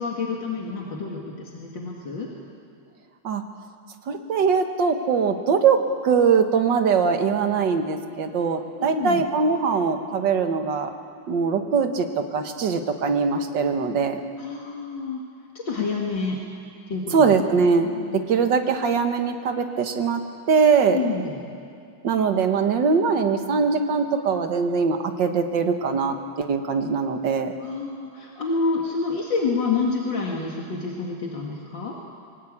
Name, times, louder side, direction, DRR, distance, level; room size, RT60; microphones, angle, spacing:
voice 1, 0.0-2.3 8.8-9.2 14.4-15.2 15.5-16.4 16.9-17.1 17.9-18.2 20.9-21.4 27.6-32.0, left 4 dB, 65° left, -2 dB, 2.6 m, -28 dB
voice 2, 4.1-5.8 6.0-10.9 11.3-14.2 17.1-17.9 18.3-21.0 22.0-27.5, right 5 dB, 60° right, 6 dB, 2.0 m, -22 dB
23.0 x 18.0 x 8.6 m, 2.5 s
omnidirectional pair, 2.2 m